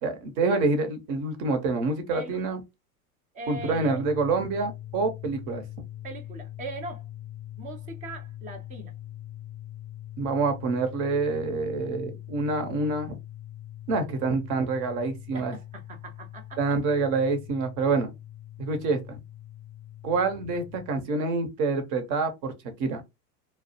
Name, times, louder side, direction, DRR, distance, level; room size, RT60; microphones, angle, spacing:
voice 1, 0.0-2.6 3.5-5.6 10.2-13.1 13.9-15.5 16.6-18.1 18.6-19.0 20.0-22.5 22.8-23.0, right 3 dB, 40° right, 0.7 m, -27 dB
voice 2, 2.1-2.5 3.3-4.0 6.0-7.1 7.6-8.9 15.3-16.6, right 2 dB, 20° right, 0.4 m, -40 dB
sound 1, 3.5-20.9, left 13 dB, 40° left, 0.5 m, -42 dB
2.2 x 2.1 x 2.7 m
hypercardioid pair, 115°, 47 cm